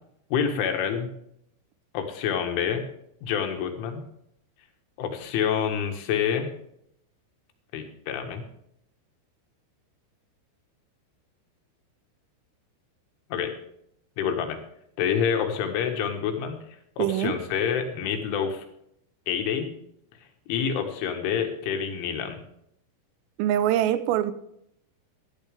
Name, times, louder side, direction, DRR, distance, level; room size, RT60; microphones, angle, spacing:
voice 1, 0.3-1.1 1.9-2.9 3.2-4.0 5.0-6.5 7.7-8.4 13.3-13.5 14.2-14.6 15.0-16.6 17.0-18.6 19.3-19.7 20.5-22.4, left 7 dB, 75° left, 5 dB, 3.9 m, -27 dB
voice 2, 17.0-17.4 23.4-24.3, right 12 dB, 90° right, 13 dB, 3.5 m, -23 dB
15.5 x 12.5 x 3.5 m, 0.74 s
omnidirectional pair, 5.8 m